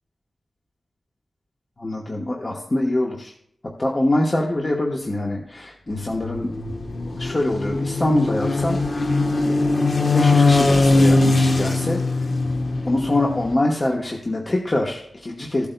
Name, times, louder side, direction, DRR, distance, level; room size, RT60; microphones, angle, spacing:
voice 1, 1.8-3.3 3.8-6.5 7.2-9.2 9.4-12.3 12.8-15.7, left 1 dB, 35° left, -1 dB, 1.1 m, -24 dB
sound 1, 5.9-13.5, left 2 dB, 60° left, 1.0 m, -20 dB
15.5 x 8.4 x 2.2 m, 0.67 s
wide cardioid pair, 70°, 0 cm